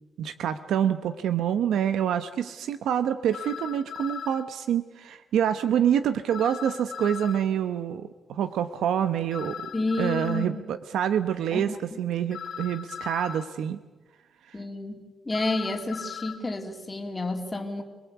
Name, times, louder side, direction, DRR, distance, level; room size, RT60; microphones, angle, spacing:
voice 1, 0.2-9.7 10.0-13.8 14.5-14.6, right 9 dB, 90° right, 11 dB, 0.9 m, -27 dB
sound 1, 3.3-4.4 6.3-7.4 9.3-10.5 12.3-13.5 15.3-16.4, left 8 dB, 70° left, 2.3 m, -38 dB
voice 2, 9.7-10.6 11.5-11.8 14.5-17.8, left 2 dB, 20° left, 3 dB, 2.8 m, -30 dB
26.5 x 19.0 x 8.3 m, 1.3 s
cardioid pair, 90°, 0 cm